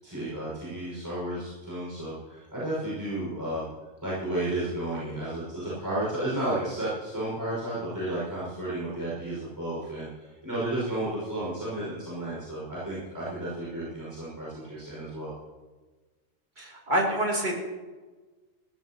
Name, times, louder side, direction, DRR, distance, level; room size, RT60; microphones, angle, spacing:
voice 1, 0.0-3.7 4.0-15.3, right 1 dB, 15° right, -9 dB, 5.8 m, -32 dB
voice 2, 16.6-17.6, right 1 dB, 35° right, -3 dB, 3.2 m, -27 dB
20.5 x 15.5 x 3.0 m, 1.3 s
omnidirectional pair, 1.5 m